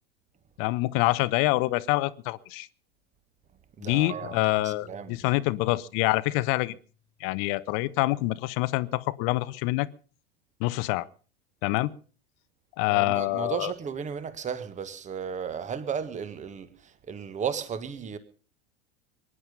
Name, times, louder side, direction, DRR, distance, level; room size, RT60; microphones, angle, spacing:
voice 1, 0.6-2.7 3.8-6.7 7.2-9.9 10.6-11.1 11.6-11.9 12.8-13.7, left 20 dB, 40° left, 0.8 m, -26 dB
voice 2, 3.8-5.2 12.9-18.2, right 7 dB, 20° right, 1.7 m, -34 dB
Marimba xylophone / Wood, 4.1-6.9, right 1 dB, 50° right, 5.9 m, -48 dB
23.0 x 11.0 x 5.5 m
figure-of-eight pair, 85°, 33 cm